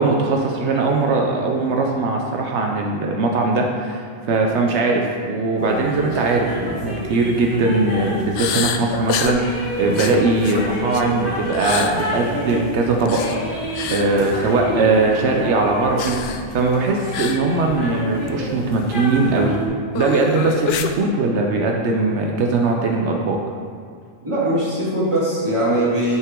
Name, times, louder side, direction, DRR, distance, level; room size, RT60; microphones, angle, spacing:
voice 1, 0.0-13.2 13.4-13.6 13.9-16.2 16.5-19.6 19.9-23.4, right 3 dB, 85° right, 1 dB, 1.0 m, -20 dB
sound 1, 5.6-19.7, equal, 50° left, 2.0 m, -29 dB
sound 2, 6.1-6.3 6.7-6.9 8.3-9.4 9.9-11.1 11.5-11.9 13.0-13.4 13.7-14.1 16.0-16.5 17.1-17.4 17.7-17.8 18.3-18.4 19.9-20.9, left 7 dB, 70° left, 0.8 m, -26 dB
voice 2, 24.2-26.2, right 1 dB, 25° right, -8 dB, 2.3 m, -20 dB
11.0 x 5.7 x 3.7 m, 2.2 s
omnidirectional pair, 1.1 m